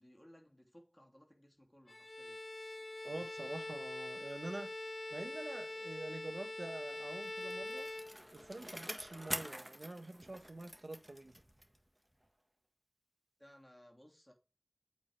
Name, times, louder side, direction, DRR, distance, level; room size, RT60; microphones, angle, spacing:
voice 1, 0.0-2.4 13.4-14.3, equal, 20° left, 2.8 m, -61 dB
Bowed string instrument, 1.9-8.7, left 2 dB, 60° left, 0.3 m, -44 dB
voice 2, 3.0-4.7 5.1-7.9 8.3-11.4, right 2 dB, 75° right, 0.9 m, -46 dB
Bicycle, 7.0-11.9 12.2-12.3, equal, 15° right, 1.4 m, -46 dB
8.5 x 4.6 x 3.3 m
wide cardioid pair, 40°, 0 cm